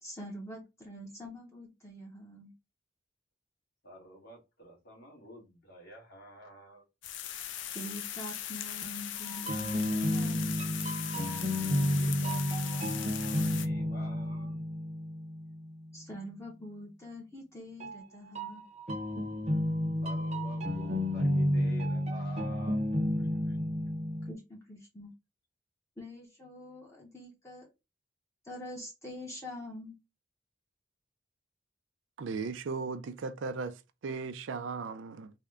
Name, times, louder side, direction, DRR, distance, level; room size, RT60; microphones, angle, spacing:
voice 1, 0.0-2.5 7.7-10.5 15.9-18.6 24.2-25.1 26.0-27.7 28.4-30.0, left 1 dB, 15° left, 0.7 m, -45 dB
voice 2, 3.8-6.8 11.9-14.6 20.0-22.8 23.2-23.6, right 1 dB, 55° left, 1.7 m, -51 dB
sound 1, 7.0-13.7, left 11 dB, 75° left, 0.4 m, -39 dB
sound 2, 9.3-15.9 17.8-24.3, left 1 dB, 35° right, 0.7 m, -31 dB
voice 3, 32.2-35.3, right 4 dB, 85° right, 0.4 m, -37 dB
3.5 x 2.1 x 3.5 m
head